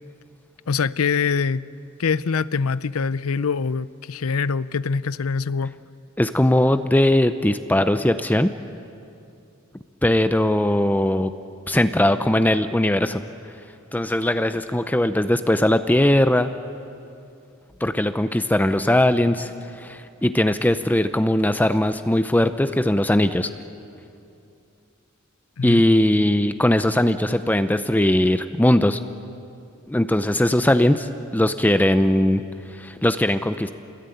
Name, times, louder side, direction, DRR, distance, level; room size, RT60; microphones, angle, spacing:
voice 1, 0.7-1.6 2.0-5.7 25.6-25.8, left 5 dB, 85° left, 0.6 m, -24 dB
voice 2, 6.2-8.5 10.0-11.3 11.7-13.2 13.9-16.5 17.8-19.5 19.8-23.5 25.6-29.0 29.9-32.4 32.7-33.7, left 1 dB, 10° left, 0.6 m, -19 dB
29.0 x 20.0 x 9.2 m
head